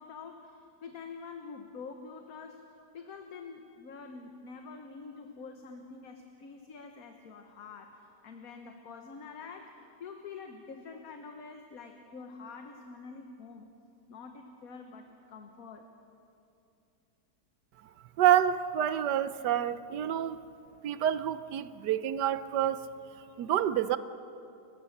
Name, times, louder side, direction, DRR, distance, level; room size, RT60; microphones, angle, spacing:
voice 1, 0.0-2.7 2.9-13.7 14.1-15.9, left 5 dB, 60° left, 5 dB, 1.6 m, -46 dB
voice 2, 18.2-20.4 20.8-22.9 23.4-24.0, right 10 dB, 75° right, 13 dB, 1.3 m, -27 dB
29.0 x 15.0 x 7.2 m, 2.7 s
omnidirectional pair, 1.8 m